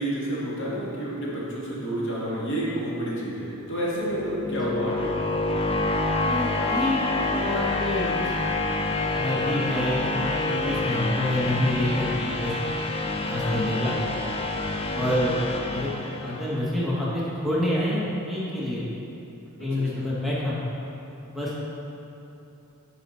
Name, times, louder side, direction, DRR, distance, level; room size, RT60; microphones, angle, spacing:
voice 1, 0.0-5.2 19.6-20.1, right 1 dB, 60° left, -6 dB, 1.7 m, -30 dB
sound 1, 3.8-16.7, left 2 dB, 25° left, 0.5 m, -27 dB
voice 2, 6.2-8.3 9.1-10.3 10.6-12.5 13.2-14.0 14.9-15.4 15.7-15.9 16.2-18.8 19.6-20.6 21.3-21.5, left 1 dB, ahead, -8 dB, 1.0 m, -27 dB
9.8 x 4.3 x 4.2 m, 2.9 s
head